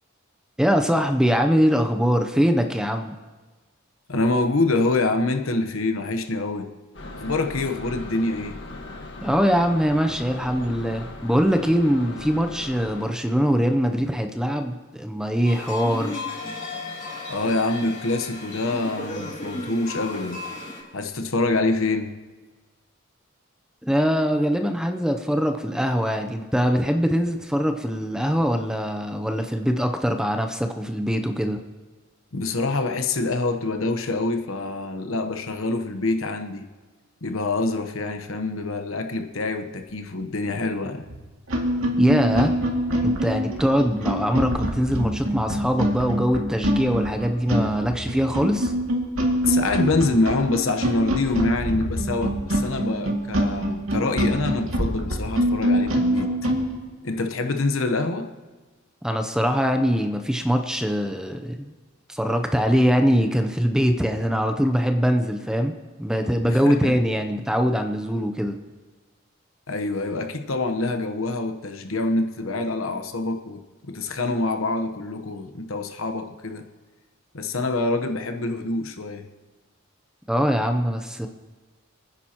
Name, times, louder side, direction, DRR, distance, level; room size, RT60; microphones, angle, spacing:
voice 1, 0.6-3.2 9.2-16.2 23.8-31.6 42.0-42.5 43.0-48.7 59.0-61.7 62.1-68.6 80.3-81.3, equal, 5° right, 5 dB, 0.6 m, -22 dB
voice 2, 4.1-6.7 7.1-8.6 17.3-20.4 20.9-22.1 32.3-36.7 37.2-41.1 49.4-56.3 57.0-58.3 66.5-66.9 69.7-76.6 77.3-79.3, left 2 dB, 75° left, 6 dB, 1.0 m, -25 dB
sound 1, 6.9-13.1, left 2 dB, 55° left, 1.5 m, -38 dB
sound 2, 15.4-20.8, left 3 dB, 35° left, 3.2 m, -34 dB
sound 3, 41.0-41.2 41.5-56.6, equal, 80° right, 2.3 m, -25 dB
28.0 x 9.9 x 2.9 m, 1.3 s
head